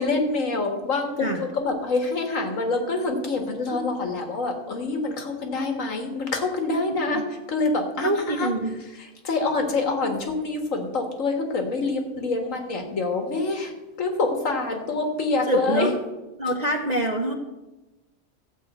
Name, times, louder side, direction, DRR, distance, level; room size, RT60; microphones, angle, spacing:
voice 1, 0.0-1.1 1.4-7.2 7.5-8.1 8.4-8.5 9.2-13.7 14.0-15.9, left 3 dB, 70° left, 4 dB, 2.0 m, -26 dB
voice 2, 6.9-7.2 8.0-8.8 10.0-10.1 15.4-16.0 16.4-17.3, right 2 dB, 35° right, 2 dB, 0.8 m, -26 dB
14.0 x 4.9 x 8.1 m, 1.1 s
omnidirectional pair, 1.4 m